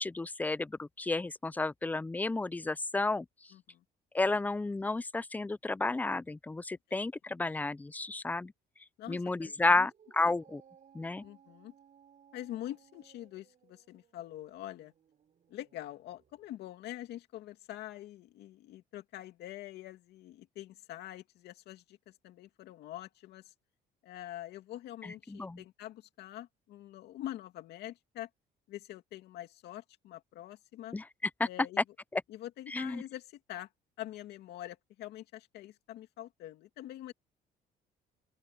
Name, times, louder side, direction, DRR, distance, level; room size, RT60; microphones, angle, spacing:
voice 1, 0.0-3.3 4.1-8.5 9.1-10.6 10.9-11.2 25.0-25.6 30.9-31.0 31.4-31.5 32.1-32.2 32.7-33.0, left 3 dB, 10° left, 0.4 m, -32 dB
voice 2, 3.5-3.8 6.9-7.0 9.0-9.9 10.2-10.3 11.2-11.7 12.3-14.9 15.5-23.5 24.0-28.3 28.7-31.0 31.4-31.8 32.3-33.7 34.0-37.1, left 13 dB, 75° left, 2.5 m, -45 dB
Dog, 9.9-16.5, right 8 dB, 45° right, 5.3 m, -63 dB
open air
cardioid pair, 110°, 17 cm